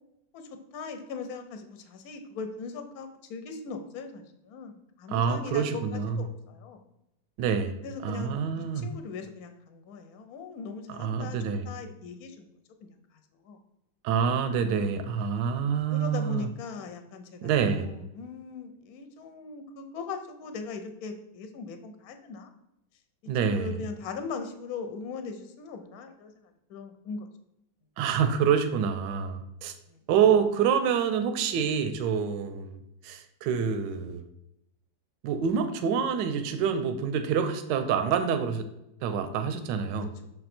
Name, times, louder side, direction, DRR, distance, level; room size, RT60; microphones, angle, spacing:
voice 1, 0.3-6.8 7.8-11.4 11.7-12.5 12.8-13.0 13.4-13.6 15.9-17.5 17.8-22.5 23.4-27.3 29.9-30.0, left 4 dB, 60° left, 7 dB, 1.2 m, -40 dB
voice 2, 5.1-6.2 7.4-7.7 8.0-8.9 10.9-11.7 14.0-16.5 17.4-17.9 23.3-23.8 28.0-29.7 30.1-32.8 33.0-34.3 35.2-38.7 39.0-40.1, right 7 dB, 80° right, 8 dB, 1.3 m, -27 dB
6.6 x 4.3 x 4.2 m, 0.85 s
omnidirectional pair, 2.0 m